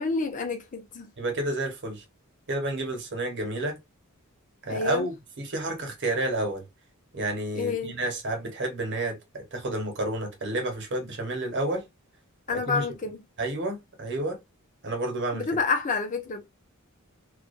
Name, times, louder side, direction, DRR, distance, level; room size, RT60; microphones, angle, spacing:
voice 1, 0.0-1.1 4.7-5.1 7.6-8.0 12.5-13.2 15.3-16.5, left 4 dB, 35° left, 0.6 m, -29 dB
voice 2, 1.2-2.0 2.5-3.8 4.6-6.6 7.1-11.9 12.5-12.9 13.4-14.4 14.8-15.5, right 2 dB, 55° right, 1.0 m, -30 dB
2.4 x 2.2 x 2.4 m
head